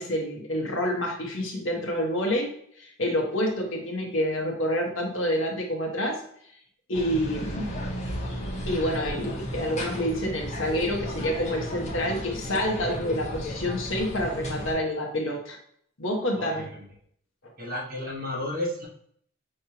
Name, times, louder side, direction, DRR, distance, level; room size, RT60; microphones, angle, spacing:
voice 1, 0.0-2.5 2.8-6.2 6.9-7.8 8.6-15.6 16.0-16.7, equal, 60° left, 0 dB, 1.0 m, -28 dB
sound 1, 6.9-14.7, equal, 30° left, 0.9 m, -34 dB
voice 2, 16.4-16.9 17.6-18.9, left 1 dB, 40° right, -3 dB, 1.3 m, -32 dB
5.6 x 3.2 x 2.8 m, 0.65 s
head